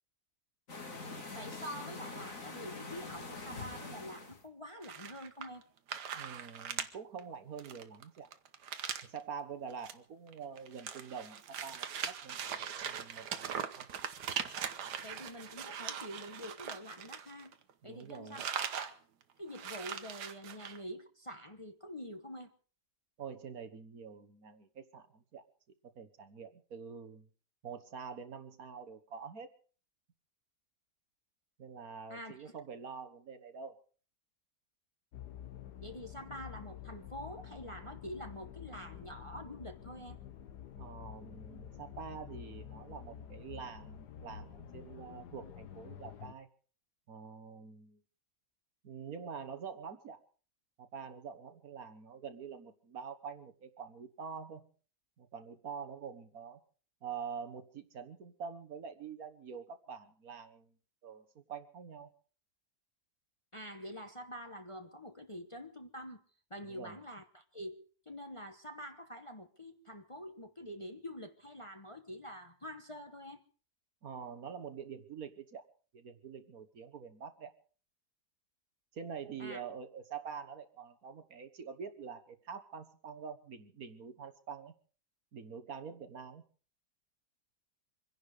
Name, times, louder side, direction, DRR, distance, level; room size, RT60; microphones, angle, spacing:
sound 1, 0.7-4.4, left 3 dB, 55° left, 2.8 m, -44 dB
voice 1, 1.3-5.6 15.0-17.5 17.8-18.9 19.4-22.5 32.1-32.6 35.8-40.2 63.5-66.2 66.5-73.4 79.4-79.6, equal, 20° left, 1.1 m, -46 dB
sound 2, 4.8-5.6 5.9-6.9 7.2-7.3 7.6-9.2 9.7-9.9 10.3-17.7 18.0-18.9 19.2-19.3 19.5-20.8, right 8 dB, 85° right, 1.7 m, -40 dB
voice 2, 6.1-8.3 9.0-13.9 17.8-18.5 23.2-25.4 25.9-27.3 27.6-29.5 31.6-33.8 40.8-46.5 47.1-48.0 48.8-50.2 50.8-54.7 55.2-56.6 57.0-60.7 61.0-62.1 66.7-67.0 74.0-75.6 75.9-77.5 78.9-84.7 85.3-86.4, right 6 dB, 65° right, 1.8 m, -46 dB
sound 3, 35.1-46.3, left 9 dB, 80° left, 1.6 m, -49 dB
25.5 x 11.0 x 5.0 m
omnidirectional pair, 1.7 m